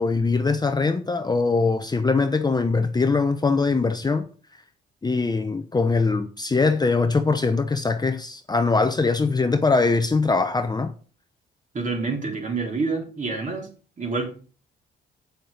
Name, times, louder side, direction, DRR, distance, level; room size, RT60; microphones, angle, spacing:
voice 1, 0.0-4.3 5.0-10.9, left 4 dB, 20° left, 0.8 m, -22 dB
voice 2, 11.7-13.7 14.0-14.3, right 4 dB, 40° right, 3.9 m, -27 dB
8.1 x 6.8 x 5.2 m
cardioid pair, 90°, 20 cm